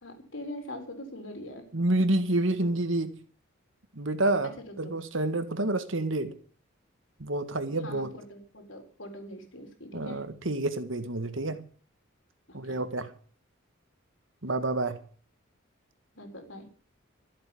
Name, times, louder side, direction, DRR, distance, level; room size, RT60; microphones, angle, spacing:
voice 1, 0.0-1.6 2.6-2.7 4.6-4.9 7.8-10.2 12.5-12.8 16.2-16.7, left 1 dB, 70° left, 4.1 m, -42 dB
voice 2, 1.7-3.2 3.9-6.3 7.2-8.1 9.9-11.6 12.5-13.1 14.4-15.0, right 2 dB, 70° right, 1.9 m, -28 dB
14.0 x 8.2 x 8.7 m
head